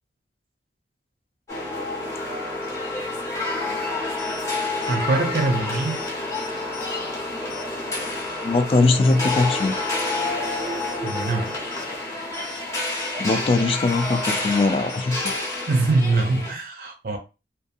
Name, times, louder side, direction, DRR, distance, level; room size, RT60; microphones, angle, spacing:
sound 1, 1.5-16.5, left 2 dB, 15° left, 0.8 m, -29 dB
sound 2, 3.8-15.4, left 2 dB, 80° left, 1.0 m, -43 dB
voice 1, 4.9-6.0 11.0-11.6 15.7-17.2, right 3 dB, 50° right, 0.4 m, -23 dB
voice 2, 8.4-9.8 13.2-15.2, left 3 dB, 30° left, 0.3 m, -21 dB
2.6 x 2.3 x 2.5 m
head